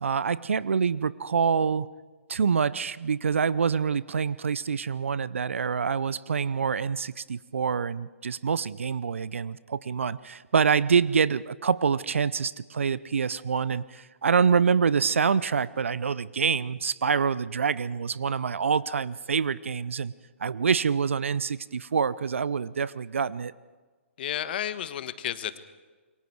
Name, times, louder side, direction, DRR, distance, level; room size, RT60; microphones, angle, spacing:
voice 1, 0.0-1.9 2.3-20.1 20.4-23.5, right 6 dB, 70° right, 19 dB, 0.6 m, -26 dB
voice 2, 24.2-25.6, left 10 dB, 45° left, 13 dB, 1.3 m, -32 dB
27.5 x 23.0 x 4.7 m, 1.4 s
figure-of-eight pair, 130°, 7 cm